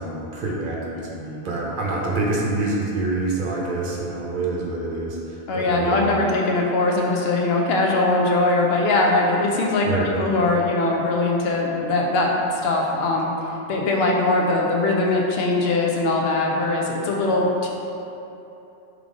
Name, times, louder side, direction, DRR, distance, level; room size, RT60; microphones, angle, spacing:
voice 1, 0.0-6.1 9.8-10.1, right 2 dB, 55° right, -3 dB, 0.8 m, -26 dB
voice 2, 5.5-9.9 10.2-13.3 13.7-17.7, left 2 dB, 75° left, -1 dB, 0.8 m, -21 dB
3.7 x 3.3 x 3.6 m, 2.9 s
omnidirectional pair, 1.1 m